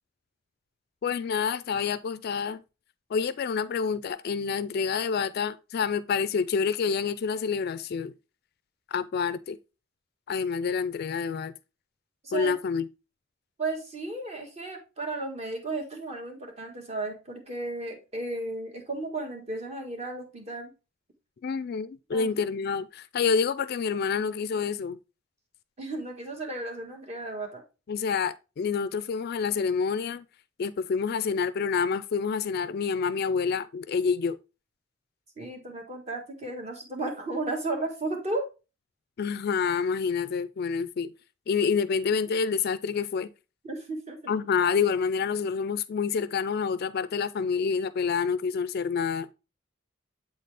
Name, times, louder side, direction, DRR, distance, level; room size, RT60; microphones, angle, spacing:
voice 1, 1.0-2.6 3.1-8.1 8.9-9.6 10.3-11.5 12.3-12.8 21.4-25.0 27.9-30.2 30.6-34.4 39.2-41.1 41.5-43.3 44.3-49.3, left 6 dB, 50° left, 0.3 m, -28 dB
voice 2, 12.2-12.5 13.6-20.7 22.1-22.5 25.8-27.6 35.4-38.5 43.6-44.3, right 2 dB, 35° right, 1.6 m, -34 dB
7.9 x 4.2 x 3.3 m
head